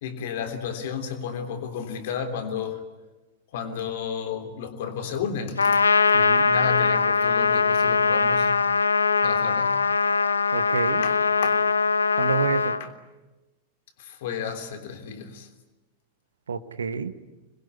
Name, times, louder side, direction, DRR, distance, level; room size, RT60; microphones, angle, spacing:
voice 1, 0.0-2.8 3.5-5.9 6.5-8.5 9.2-9.8 11.0-11.2 11.4-11.6 12.8-12.9 14.0-15.5, left 7 dB, 55° left, 7 dB, 3.3 m, -32 dB
Trumpet, 5.6-12.8, left 5 dB, 75° left, 0.8 m, -21 dB
voice 2, 6.1-6.5 10.5-11.0 12.2-12.8 16.5-17.1, right 6 dB, 70° right, 13 dB, 1.3 m, -28 dB
26.0 x 21.5 x 9.8 m, 1.1 s
figure-of-eight pair, 90°, 0 cm